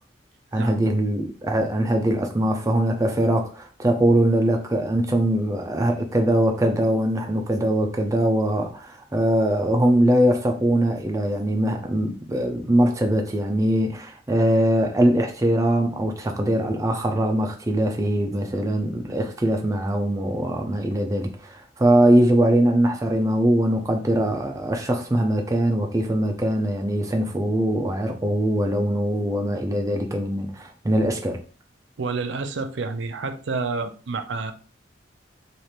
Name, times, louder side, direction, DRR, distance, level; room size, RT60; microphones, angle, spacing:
voice 1, 0.5-31.4, right 1 dB, 20° right, 0.4 m, -22 dB
voice 2, 32.0-34.5, right 4 dB, 85° right, 0.5 m, -29 dB
3.2 x 2.5 x 4.2 m
head